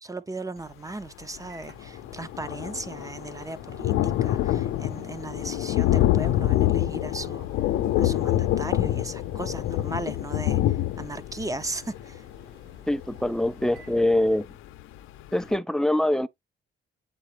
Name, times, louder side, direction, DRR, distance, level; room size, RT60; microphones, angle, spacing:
voice 1, 0.0-7.5 8.0-10.6 11.0-12.2, right 2 dB, 15° right, 0.8 m, -37 dB
Microwave oven, 1.3-14.8, right 3 dB, 60° right, 5.0 m, -56 dB
Thunder, 1.4-1.5 1.7-14.3 14.8-14.9 15.2-15.3, left 13 dB, 90° left, 0.6 m, -26 dB
voice 2, 12.9-14.5 15.3-16.3, left 1 dB, 5° left, 0.4 m, -24 dB
8.1 x 3.9 x 3.3 m
cardioid pair, 90°, 20 cm